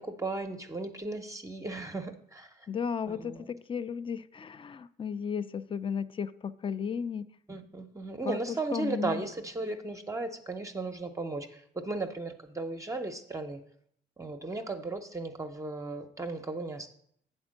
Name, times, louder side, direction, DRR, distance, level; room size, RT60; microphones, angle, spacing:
voice 1, 0.0-2.7 3.1-3.5 7.5-13.6 14.2-16.9, right 2 dB, 15° right, 5 dB, 0.6 m, -36 dB
voice 2, 2.7-7.3 8.2-8.4 8.7-9.2, left 6 dB, 25° left, 14 dB, 0.4 m, -34 dB
7.8 x 4.4 x 6.3 m, 0.67 s
cardioid pair, 90°, 20 cm